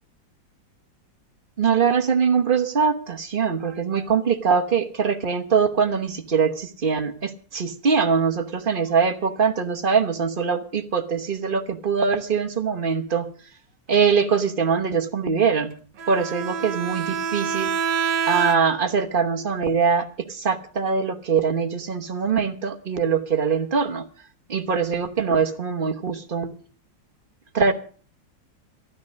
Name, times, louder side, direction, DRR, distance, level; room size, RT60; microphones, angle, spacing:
voice 1, 1.6-13.3 13.9-15.7 16.1-17.7 18.3-24.0 24.5-26.5 27.5-27.7, right 6 dB, 35° right, 6 dB, 1.0 m, -22 dB
Bowed string instrument, 16.0-19.0, right 7 dB, 70° right, 1.7 m, -27 dB
13.0 x 12.0 x 6.3 m, 0.42 s
omnidirectional pair, 2.0 m